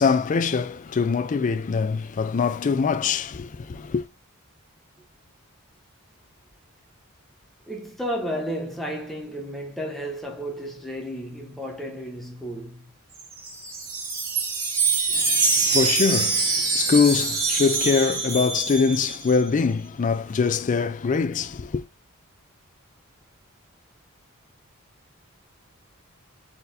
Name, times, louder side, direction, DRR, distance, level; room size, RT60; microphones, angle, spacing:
voice 1, 0.0-4.1 15.1-21.8, left 5 dB, 35° left, 0.4 m, -23 dB
voice 2, 7.7-12.9, equal, ahead, 0.9 m, -32 dB
Wind chime, 13.2-19.4, right 4 dB, 45° right, 1.8 m, -24 dB
4.3 x 4.0 x 2.6 m
head